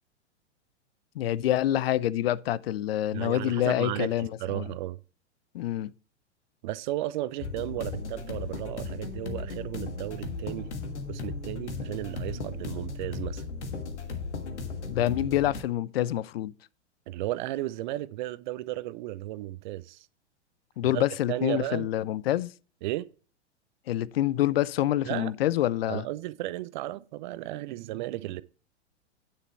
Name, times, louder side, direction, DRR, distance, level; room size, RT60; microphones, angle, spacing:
voice 1, 1.2-4.3 4.5-4.7 5.5-5.9 14.9-16.5 20.8-22.5 23.9-26.0, left 13 dB, 55° left, 0.6 m, -27 dB
voice 2, 3.1-5.0 6.6-10.7 11.1-13.4 17.1-20.1 20.8-21.9 22.8-23.1 25.1-25.3 25.9-28.4, right 15 dB, 40° right, 0.6 m, -34 dB
sound 1, 7.4-15.6, left 3 dB, 70° left, 1.8 m, -36 dB
9.8 x 6.7 x 4.4 m
figure-of-eight pair, 100°, 35 cm